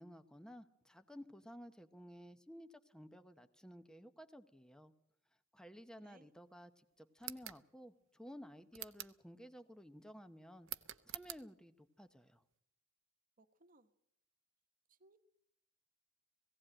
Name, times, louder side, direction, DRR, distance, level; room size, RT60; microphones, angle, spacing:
voice 1, 0.0-4.9 5.5-10.7 11.0-12.4, equal, 5° left, 10 dB, 0.9 m, -55 dB
sound 1, 7.2-7.6 8.7-9.2 10.6-11.4, right 14 dB, 65° right, 0.9 m, -47 dB
voice 2, 13.4-13.9 14.9-15.2, right 2 dB, 45° right, 10 dB, 1.2 m, -66 dB
18.5 x 16.5 x 8.8 m, 0.74 s
head